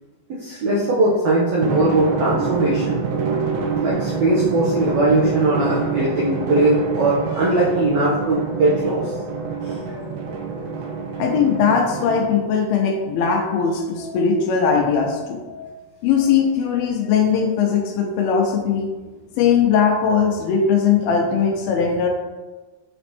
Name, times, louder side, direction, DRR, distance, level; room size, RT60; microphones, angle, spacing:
voice 1, 0.3-3.0 3.8-9.1 9.6-9.8, right 2 dB, 90° right, -6 dB, 1.5 m, -20 dB
Drum, 1.6-12.6, right 5 dB, 75° right, 2.3 m, -26 dB
voice 2, 11.2-15.7 16.0-18.9 19.4-22.1, left 6 dB, 80° left, 2 dB, 2.5 m, -19 dB
6.8 x 5.2 x 2.9 m, 1.2 s
omnidirectional pair, 4.6 m